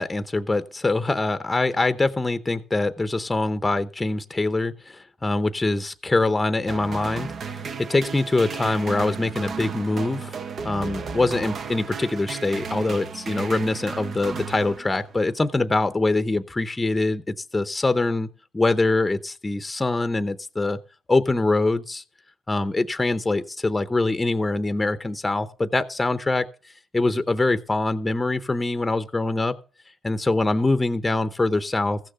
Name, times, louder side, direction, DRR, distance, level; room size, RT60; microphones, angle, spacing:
voice 1, 0.0-7.3 7.9-10.3 10.6-18.3 18.5-20.8 21.1-22.0 22.5-26.5 26.9-29.5 30.0-32.0, left 2 dB, 15° left, 0.8 m, -24 dB
sound 1, 6.7-15.3, right 5 dB, 55° right, 0.9 m, -34 dB
15.0 x 6.5 x 6.8 m
cardioid pair, 90°, 0 cm